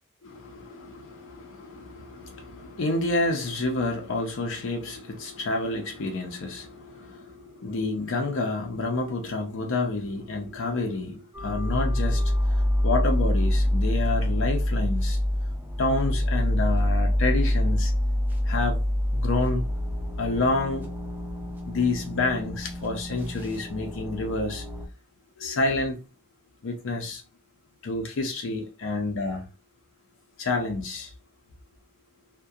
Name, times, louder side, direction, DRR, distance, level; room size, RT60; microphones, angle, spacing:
voice 1, 0.2-12.3 12.8-15.2 15.8-17.9 18.5-18.8 19.1-19.7 20.2-20.9 21.7-24.6 25.4-26.0 26.6-27.2 27.8-29.5 30.4-31.1, left 2 dB, 60° left, 0.5 m, -29 dB
sound 1, 11.3-24.9, left 1 dB, 10° right, 0.4 m, -26 dB
2.3 x 2.1 x 2.6 m
head